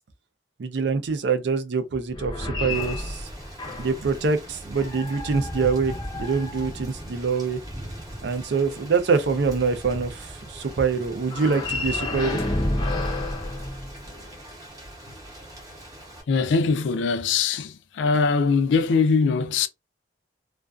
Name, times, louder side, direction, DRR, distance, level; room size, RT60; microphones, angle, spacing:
voice 1, 0.6-3.3 3.8-7.6 8.2-12.4, right 5 dB, 70° right, 0.4 m, -25 dB
sound 1, 2.1-4.1 4.7-7.1 11.2-14.4, left 2 dB, 25° left, 0.5 m, -31 dB
Thunder / Rain, 2.7-16.2, equal, 20° right, 0.7 m, -40 dB
voice 2, 16.3-19.7, left 4 dB, 85° left, 0.4 m, -22 dB
2.4 x 2.2 x 2.3 m
head